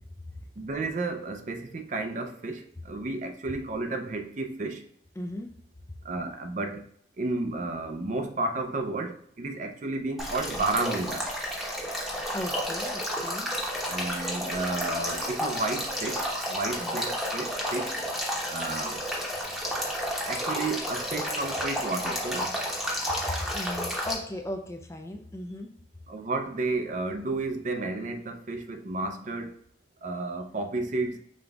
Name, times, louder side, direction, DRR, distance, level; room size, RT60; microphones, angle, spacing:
voice 1, 0.6-4.9 6.0-6.9 7.2-11.3 13.9-18.0 18.5-19.0 20.3-22.5 26.1-29.6 30.0-31.2, right 3 dB, 45° right, 5 dB, 0.5 m, -32 dB
voice 2, 5.2-5.5 12.3-13.5 16.8-17.0 23.3-25.7, left 1 dB, 15° left, 5 dB, 0.4 m, -36 dB
Male speech man speaking / Stream / Trickle dribble, 10.2-24.1, equal, ahead, 0.9 m, -31 dB
5.1 x 3.7 x 2.3 m, 0.66 s
head